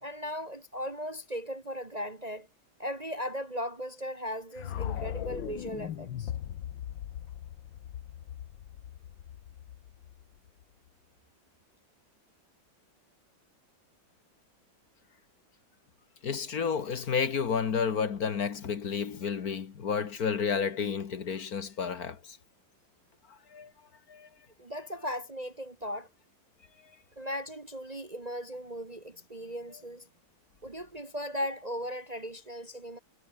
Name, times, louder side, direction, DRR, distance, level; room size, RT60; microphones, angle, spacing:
voice 1, 0.0-2.5 2.8-6.3 24.6-26.1 27.2-30.1 30.6-33.0, equal, 25° right, 1.2 m, -37 dB
sound 1, 4.6-10.6, left 11 dB, 75° left, 1.8 m, -39 dB
voice 2, 16.2-22.4 23.3-23.7 24.1-24.3 26.8-26.9, left 6 dB, 55° left, 1.8 m, -31 dB
omnidirectional pair, 2.1 m